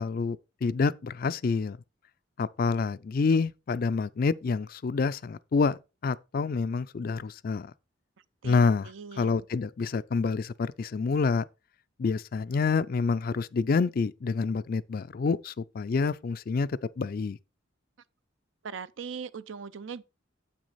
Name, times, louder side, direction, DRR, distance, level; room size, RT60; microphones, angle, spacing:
voice 1, 0.0-1.8 2.4-7.7 8.4-11.4 12.0-17.4, left 4 dB, 45° left, 0.4 m, -28 dB
voice 2, 8.4-9.4 18.6-20.0, right 6 dB, 75° right, 0.5 m, -40 dB
8.1 x 6.2 x 4.1 m
head